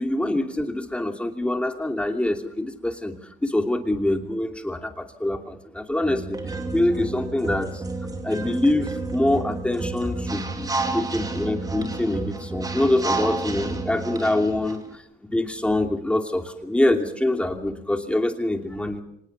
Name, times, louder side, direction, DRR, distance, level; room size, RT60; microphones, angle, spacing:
voice 1, 0.0-3.1 3.4-6.4 6.7-7.8 8.2-15.0 15.3-19.0, left 1 dB, 5° left, 5 dB, 2.8 m, -25 dB
sound 1, 6.0-14.8, right 3 dB, 20° right, 2.8 m, -30 dB
25.0 x 19.5 x 7.0 m, 0.77 s
cardioid pair, 110°, 17 cm